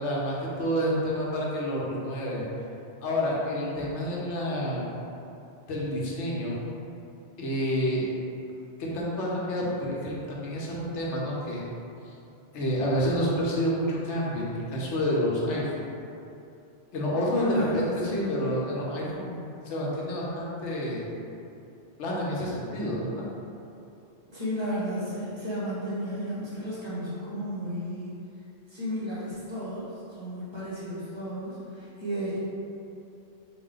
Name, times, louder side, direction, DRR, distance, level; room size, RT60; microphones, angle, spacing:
voice 1, 0.0-2.4 3.0-5.0 5.7-6.6 7.4-8.1 8.8-11.7 12.1-12.2 12.5-15.7 16.9-21.1 22.0-23.3, equal, 75° left, -4 dB, 1.1 m, -29 dB
voice 2, 17.3-18.4 24.3-28.1 28.7-32.4, equal, 25° right, -10 dB, 1.1 m, -33 dB
4.1 x 2.1 x 3.7 m, 2.7 s
omnidirectional pair, 1.2 m